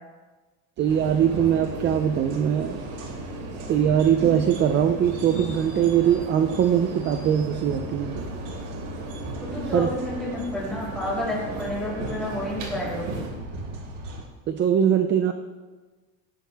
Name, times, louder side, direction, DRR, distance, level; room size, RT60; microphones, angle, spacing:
voice 1, 0.8-2.9 3.7-8.2 9.7-9.9 14.5-15.3, right 9 dB, 30° right, 8 dB, 0.6 m, -21 dB
sound 1, 0.8-14.2, right 2 dB, 75° right, 3.6 m, -37 dB
sound 2, 0.9-13.3, right 2 dB, 55° right, 3.1 m, -38 dB
voice 2, 9.4-13.2, left 1 dB, ahead, -6 dB, 5.6 m, -30 dB
17.5 x 13.5 x 3.5 m, 1.3 s
cardioid pair, 170°, 36 cm